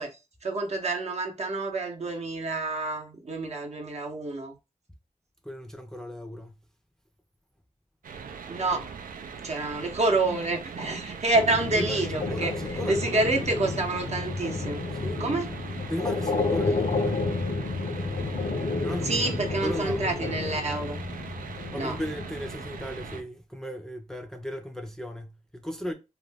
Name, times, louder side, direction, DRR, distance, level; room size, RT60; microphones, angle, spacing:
voice 1, 0.0-4.5 8.5-8.9 9.4-14.9 15.2-15.5 17.8-18.0 19.0-21.0 21.7-22.0, right 2 dB, 50° right, 0.7 m, -28 dB
voice 2, 5.4-6.6 8.7-8.9 9.3-9.5 11.8-13.7 14.9-15.2 15.8-17.3 18.8-20.5 21.7-25.9, equal, 5° left, 0.5 m, -36 dB
sound 1, 8.0-23.2, right 6 dB, 85° right, 0.4 m, -41 dB
sound 2, 11.3-23.2, left 3 dB, 55° left, 0.5 m, -31 dB
2.4 x 2.2 x 3.3 m
wide cardioid pair, 75°, 14 cm